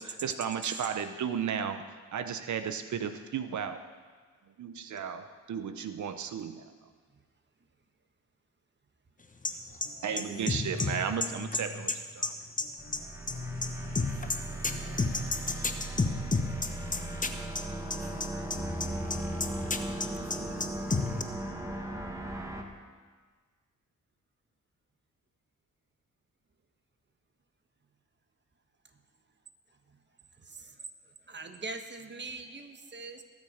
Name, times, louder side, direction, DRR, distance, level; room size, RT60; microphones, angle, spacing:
voice 1, 0.0-1.8 2.1-3.8 4.6-6.7 10.0-11.9, right 7 dB, 65° right, 0.8 m, -34 dB
voice 2, 9.2-21.2, left 3 dB, 25° left, 1.3 m, -34 dB
sound 1, 12.8-22.6, right 2 dB, 10° right, 1.6 m, -38 dB
voice 3, 30.4-33.2, right 3 dB, 35° right, 1.3 m, -43 dB
21.0 x 7.4 x 5.1 m
cardioid pair, 75°, 31 cm